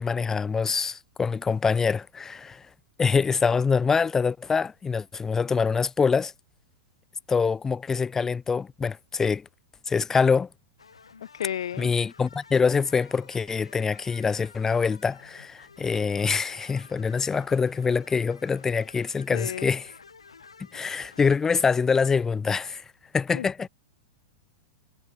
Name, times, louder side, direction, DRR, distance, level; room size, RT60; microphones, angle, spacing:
voice 1, 0.0-2.6 3.0-6.3 7.3-9.4 9.9-10.5 11.8-19.9 20.7-22.8 23.1-23.7, left 5 dB, 15° left, 0.9 m, -25 dB
sound 1, 10.8-21.4, left 5 dB, 90° left, 6.2 m, -52 dB
voice 2, 11.3-11.9 19.3-19.7 23.3-23.5, left 10 dB, 75° left, 2.0 m, -32 dB
hypercardioid pair, 105°, 3 cm